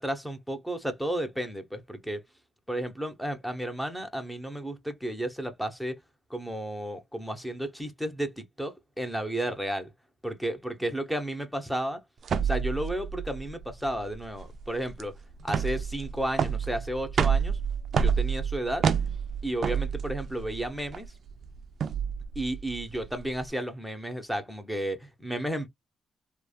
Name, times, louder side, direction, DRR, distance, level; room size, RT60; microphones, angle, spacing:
voice 1, 0.0-2.2 2.7-6.0 6.3-9.9 10.2-12.0 12.4-15.1 15.4-17.6 17.9-18.9 19.4-21.1 22.3-25.7, right 1 dB, 5° left, 0.8 m, -33 dB
sound 1, 12.2-23.5, right 7 dB, 60° right, 0.4 m, -29 dB
3.2 x 2.1 x 2.3 m
cardioid pair, 80°, 0 cm